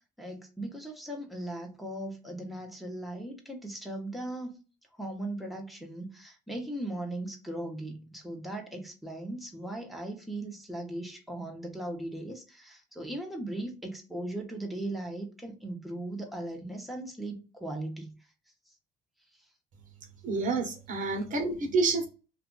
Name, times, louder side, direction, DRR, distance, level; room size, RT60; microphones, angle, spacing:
voice 1, 0.2-4.6 5.0-18.2 20.4-20.5 21.1-21.2, right 1 dB, ahead, 1.1 m, -38 dB
voice 2, 20.2-22.1, right 3 dB, 50° right, 1.1 m, -28 dB
2.8 x 2.4 x 3.9 m
cardioid pair, 110°, 17 cm